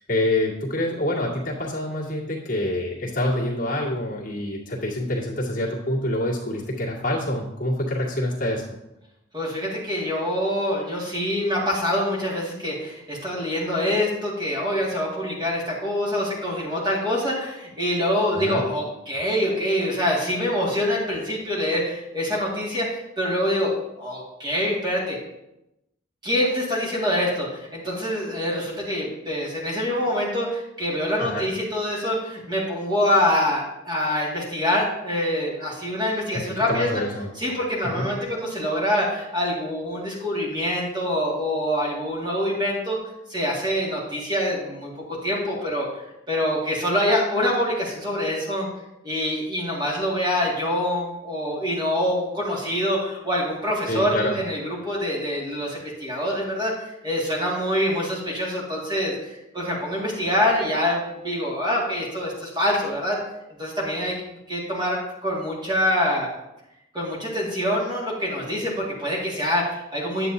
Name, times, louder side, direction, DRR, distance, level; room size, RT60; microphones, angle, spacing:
voice 1, 0.0-8.8 18.3-18.7 31.2-31.5 36.3-36.4 36.7-37.3 37.8-38.1 53.9-54.4, left 1 dB, 45° left, -6 dB, 2.0 m, -26 dB
voice 2, 9.3-25.2 26.2-37.0 37.4-43.0 43.3-45.9 46.3-48.7 49.0-63.2 63.6-64.2 64.5-66.3 66.9-70.3, left 1 dB, 20° right, -4 dB, 2.0 m, -25 dB
9.6 x 7.7 x 2.7 m, 0.89 s
head